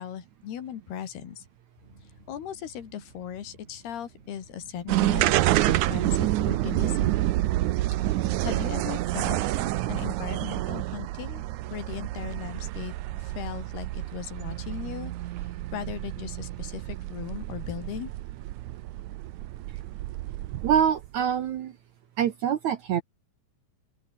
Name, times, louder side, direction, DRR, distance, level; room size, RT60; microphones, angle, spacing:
voice 1, 0.0-1.4 2.3-5.4 5.7-7.2 8.0-9.4 9.9-11.4 11.7-12.9 13.2-15.1 15.7-18.1, left 9 dB, 75° left, 4.4 m, -38 dB
sound 1, 1.8-9.9, right 1 dB, 15° right, 7.0 m, -52 dB
sound 2, 4.9-21.1, right 16 dB, 90° right, 1.7 m, -28 dB
voice 2, 20.6-21.7 22.2-23.0, right 9 dB, 65° right, 2.0 m, -25 dB
open air
omnidirectional pair, 4.6 m